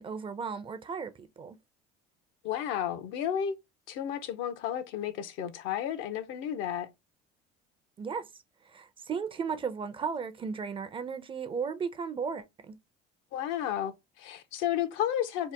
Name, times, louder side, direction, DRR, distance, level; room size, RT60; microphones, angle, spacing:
voice 1, 0.0-1.6 8.0-8.3 8.6-12.8, right 6 dB, 25° right, 0.4 m, -35 dB
voice 2, 2.4-3.5 3.9-6.9 13.3-15.5, left 10 dB, 75° left, 0.6 m, -32 dB
2.9 x 2.1 x 3.3 m
cardioid pair, 110°, 20 cm